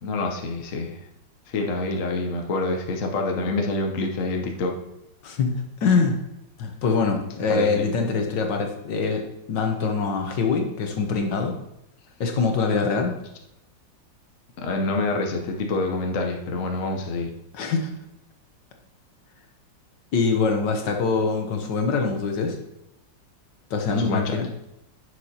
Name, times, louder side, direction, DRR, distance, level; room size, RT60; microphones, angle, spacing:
voice 1, 0.0-1.0 1.5-4.8 7.5-7.9 14.6-17.3 23.9-24.3, left 2 dB, 50° left, 2 dB, 1.2 m, -26 dB
voice 2, 5.2-6.2 6.6-11.5 12.2-13.2 17.5-17.9 20.1-22.6 23.7-24.5, left 4 dB, 70° left, 4 dB, 1.6 m, -24 dB
10.5 x 6.5 x 2.9 m, 0.85 s
omnidirectional pair, 2.0 m